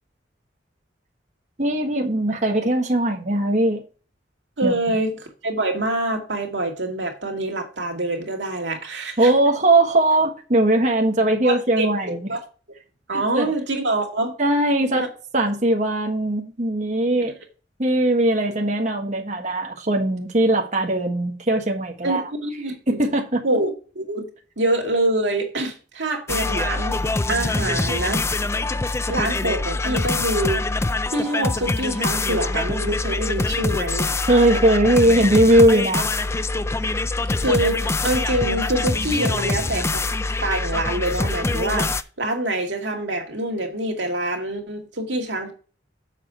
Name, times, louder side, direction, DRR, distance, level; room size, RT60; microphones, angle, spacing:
voice 1, 1.6-3.8 4.6-4.8 9.2-12.3 13.1-13.5 14.4-15.0 15.3-17.3 17.8-22.3 22.9-23.4 34.3-36.1, right 1 dB, 40° right, 1.4 m, -19 dB
voice 2, 4.6-9.3 11.4-11.9 12.3-12.4 13.1-14.3 14.9-15.1 17.2-17.3 22.0-23.0 23.4-24.3 24.6-27.0 27.3-28.2 29.1-30.6 31.1-34.1 37.4-40.0 40.4-45.5, right 1 dB, 90° right, 2.2 m, -25 dB
sound 1, 26.3-42.0, left 2 dB, 15° left, 0.3 m, -24 dB
7.4 x 5.9 x 4.6 m
head